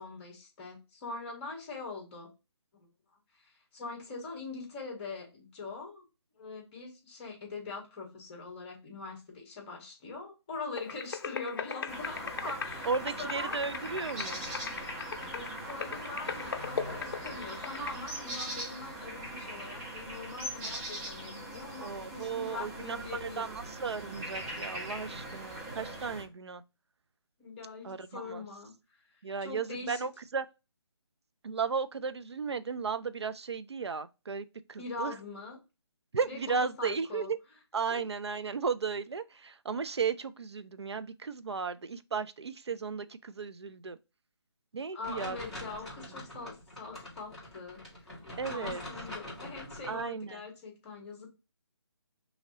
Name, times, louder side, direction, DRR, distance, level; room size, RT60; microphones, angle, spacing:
voice 1, 0.0-2.3 2.7-2.9 3.3-6.0 6.4-13.6 15.3-23.5 27.4-28.7 29.4-30.1 34.8-35.6 36.3-37.3 37.9-38.1 44.9-48.1 48.4-51.3, left 3 dB, 25° left, 1.8 m, -43 dB
sound 1, 10.8-17.9, left 6 dB, 50° left, 0.7 m, -39 dB
sound 2, 11.9-26.2, right 1 dB, 15° right, 1.2 m, -41 dB
voice 2, 12.8-14.4 21.8-26.6 27.8-28.4 29.2-30.5 31.4-35.1 36.1-37.4 37.7-44.0 44.7-45.4 48.4-48.8 49.9-50.4, right 5 dB, 75° right, 0.6 m, -35 dB
sound 3, 45.0-50.0, left 1 dB, ahead, 2.0 m, -44 dB
5.6 x 2.9 x 2.9 m
figure-of-eight pair, 155°, 14 cm